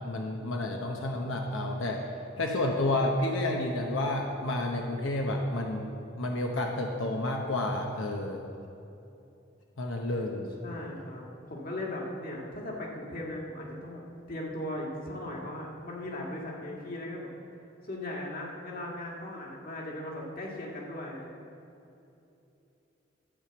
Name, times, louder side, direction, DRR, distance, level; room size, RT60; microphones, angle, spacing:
voice 1, 0.0-2.0 2.4-8.4 9.8-10.5, left 1 dB, 90° left, 1 dB, 0.9 m, -30 dB
voice 2, 10.6-14.0 14.3-17.3 17.8-21.3, left 1 dB, 50° left, -2 dB, 1.9 m, -38 dB
12.0 x 5.2 x 7.9 m, 2.8 s
head